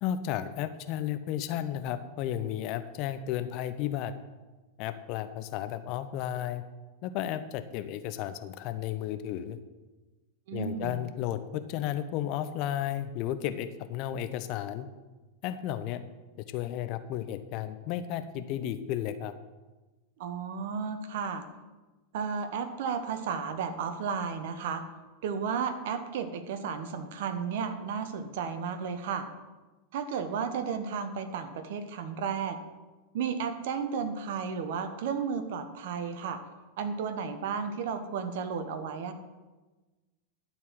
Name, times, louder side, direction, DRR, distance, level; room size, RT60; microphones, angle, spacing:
voice 1, 0.0-4.1 4.8-6.6 7.0-9.6 10.5-14.9 15.4-16.0 16.5-19.3, left 11 dB, 50° left, 11 dB, 0.7 m, -33 dB
voice 2, 10.5-11.0 20.2-21.4 22.1-24.8 25.2-29.3 29.9-32.6 33.1-36.4 36.8-39.1, right 6 dB, 60° right, 9 dB, 1.1 m, -33 dB
12.0 x 4.5 x 7.6 m, 1.2 s
figure-of-eight pair, 90°, 0 cm